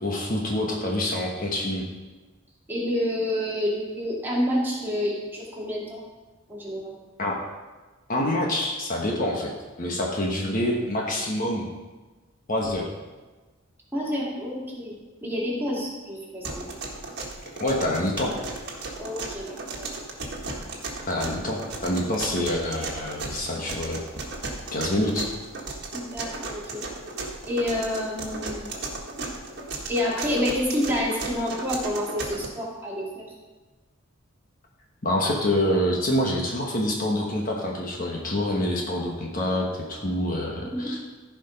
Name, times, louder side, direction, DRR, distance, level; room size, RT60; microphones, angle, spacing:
voice 1, 0.0-1.8 7.2-7.4 8.1-9.5 9.8-11.7 12.5-12.9 17.6-18.4 21.1-24.0 24.7-25.3 35.0-41.0, left 1 dB, 40° left, -1 dB, 1.3 m, -26 dB
voice 2, 2.7-6.0 6.5-6.9 13.9-16.7 19.0-19.6 25.9-26.8 27.4-28.7 29.2-29.3 29.9-33.3 40.7-40.9, left 1 dB, 10° right, -5 dB, 2.4 m, -28 dB
sound 1, 16.4-32.5, right 3 dB, 55° right, 1.7 m, -35 dB
14.5 x 5.1 x 5.2 m, 1.3 s
head